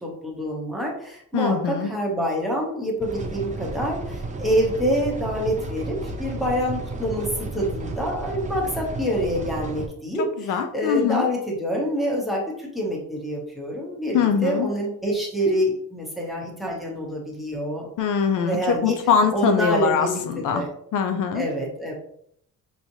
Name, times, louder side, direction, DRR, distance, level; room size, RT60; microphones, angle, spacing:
voice 1, 0.0-17.9 18.4-19.0 19.3-20.7 21.3-21.9, equal, ahead, -2 dB, 0.8 m, -26 dB
voice 2, 1.3-1.9 10.5-11.2 14.1-14.7 18.0-20.6 20.9-21.4, left 6 dB, 65° left, 7 dB, 0.5 m, -22 dB
sound 1, 3.0-9.9, right 2 dB, 20° right, 0.4 m, -33 dB
5.5 x 3.0 x 2.7 m, 0.68 s
cardioid pair, 180°, 34 cm